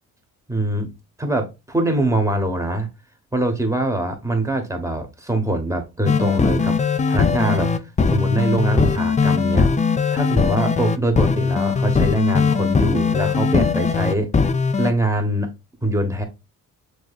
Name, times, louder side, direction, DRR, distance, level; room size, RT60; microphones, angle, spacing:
voice 1, 0.5-0.9 1.2-2.9 3.3-6.8 7.1-7.8 8.1-9.7 10.1-14.3 14.8-15.5 15.8-16.2, right 1 dB, 10° right, 1.3 m, -23 dB
sound 1, 6.1-14.9, left 5 dB, 20° left, 0.5 m, -19 dB
6.2 x 3.0 x 2.4 m
cardioid pair, 75°, 36 cm